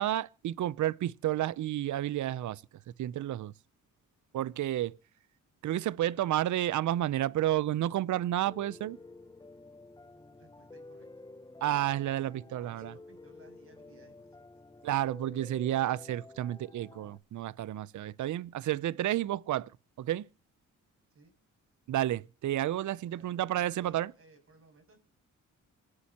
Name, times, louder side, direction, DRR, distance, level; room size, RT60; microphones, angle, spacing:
voice 1, 0.0-2.6 3.0-3.5 4.3-5.0 5.6-9.0 11.6-12.9 14.8-19.7 20.0-20.2 21.9-24.1, right 13 dB, 65° right, 0.6 m, -31 dB
Piano, 8.5-17.2, left 2 dB, 15° left, 0.6 m, -51 dB
voice 2, 10.0-11.1 12.1-14.4 21.1-21.3 23.0-25.0, right 4 dB, 45° right, 7.4 m, -60 dB
26.5 x 9.7 x 2.9 m
cardioid pair, 100°, 32 cm